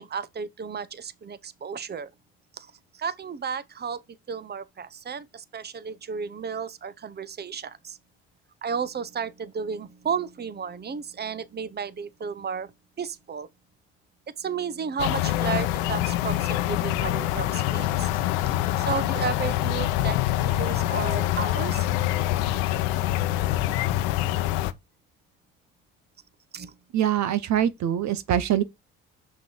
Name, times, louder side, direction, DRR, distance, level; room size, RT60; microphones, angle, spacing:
voice 1, 0.0-2.1 2.6-2.7 2.9-4.0 4.3-8.0 8.6-12.7 13.0-13.5 14.4-18.2 18.8-21.9 26.5-26.7, right 6 dB, 30° right, 1.0 m, -33 dB
Ambient Nature (with birds), 15.0-24.7, left 14 dB, 85° left, 0.8 m, -25 dB
voice 2, 26.9-28.6, right 10 dB, 60° right, 1.1 m, -23 dB
6.6 x 5.9 x 4.6 m
hypercardioid pair, 60°, 31 cm